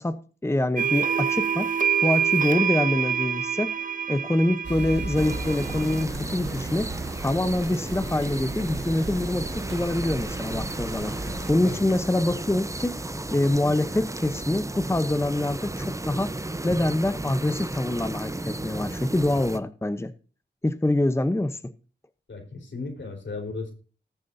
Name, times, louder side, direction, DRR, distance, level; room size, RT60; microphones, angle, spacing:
voice 1, 0.0-1.7 2.0-6.9 7.2-11.1 11.5-13.0 13.3-16.4 16.6-20.1 20.6-21.7, left 1 dB, 15° left, 0.8 m, -25 dB
sound 1, 0.8-6.0, right 8 dB, 45° right, 0.9 m, -26 dB
sound 2, 4.6-11.5, right 2 dB, 65° right, 1.7 m, -36 dB
sound 3, 5.1-19.6, right 2 dB, 15° right, 0.8 m, -34 dB
voice 2, 22.3-23.7, left 3 dB, 75° left, 4.2 m, -35 dB
19.5 x 7.3 x 2.7 m
wide cardioid pair, 75°, 19 cm